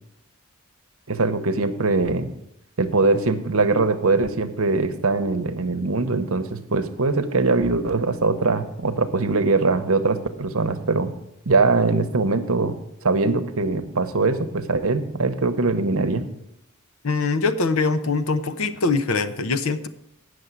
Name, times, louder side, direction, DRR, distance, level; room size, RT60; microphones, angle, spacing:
voice 1, 1.1-2.3 2.8-11.1 11.5-16.2, right 3 dB, 70° right, 9 dB, 0.9 m, -22 dB
voice 2, 17.0-19.9, left 4 dB, 70° left, 11 dB, 0.7 m, -23 dB
8.8 x 6.5 x 8.0 m, 0.81 s
head